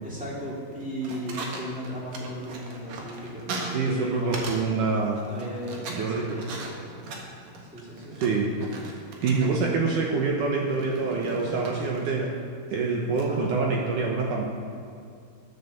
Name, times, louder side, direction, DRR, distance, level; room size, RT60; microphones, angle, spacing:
voice 1, 0.0-4.8 5.2-7.4 7.7-8.2 13.3-13.7, equal, 5° right, -7 dB, 1.4 m, -36 dB
sound 1, 0.7-4.7 4.9-9.7 10.7-12.3 13.2-13.5, right 3 dB, 60° right, 2.0 m, -38 dB
voice 2, 3.7-5.2 5.9-6.4 8.2-8.5 9.2-12.3 12.7-14.4, right 4 dB, 75° right, -1 dB, 1.9 m, -26 dB
12.5 x 8.2 x 6.9 m, 2.4 s
omnidirectional pair, 5.0 m